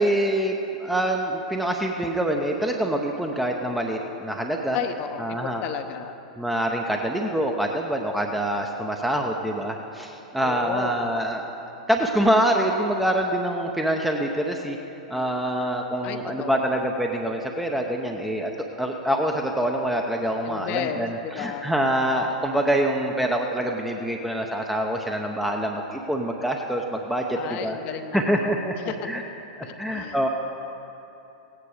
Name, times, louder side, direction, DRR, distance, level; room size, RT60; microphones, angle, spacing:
voice 1, 0.0-4.8 5.2-5.6 6.4-11.4 11.9-14.8 15.1-18.5 18.8-27.8 28.1-29.2 29.8-30.3, right 1 dB, 5° right, 1 dB, 0.8 m, -25 dB
voice 2, 4.7-6.1 10.4-11.0 16.0-16.8 20.4-21.7 27.3-28.9 29.6-30.3, left 8 dB, 40° left, 8 dB, 0.9 m, -33 dB
16.5 x 9.7 x 5.0 m, 3.0 s
figure-of-eight pair, 100°, 4 cm